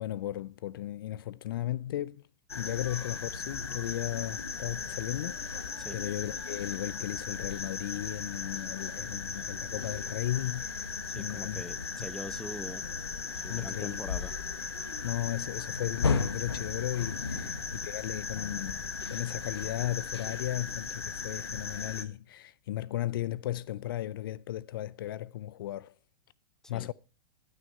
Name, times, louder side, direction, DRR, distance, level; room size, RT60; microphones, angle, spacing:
voice 1, 0.0-2.2 2.6-11.6 13.5-14.0 15.0-25.9 26.7-26.9, left 13 dB, 60° left, 0.4 m, -35 dB
sound 1, 2.5-22.0, left 5 dB, 85° left, 1.1 m, -36 dB
voice 2, 11.1-12.9 13.3-14.3 17.3-17.5 26.6-26.9, left 1 dB, 5° left, 0.6 m, -43 dB
11.5 x 6.4 x 5.3 m
hypercardioid pair, 110°, 13 cm